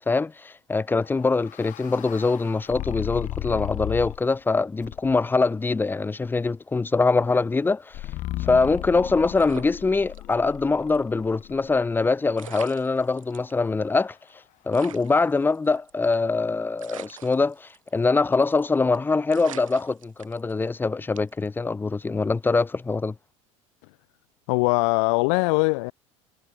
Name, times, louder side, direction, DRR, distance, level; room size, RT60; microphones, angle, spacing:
voice 1, 0.0-8.0 8.4-14.2 14.7-23.1, left 3 dB, 10° left, 0.5 m, -23 dB
sound 1, 1.0-4.4 4.8-5.4 7.9-12.0, left 16 dB, 50° left, 1.1 m, -35 dB
sound 2, 9.4-10.6 10.9-11.0 12.0-12.1 12.4-13.5 14.0-14.1 14.3-14.4 14.7-16.3 16.8-18.0 18.3-18.6 18.9-19.0 19.3-20.7 21.2-21.5, right 11 dB, 85° right, 4.5 m, -44 dB
voice 2, 24.5-25.9, left 32 dB, 65° left, 1.5 m, -21 dB
hypercardioid pair, 85°, 17 cm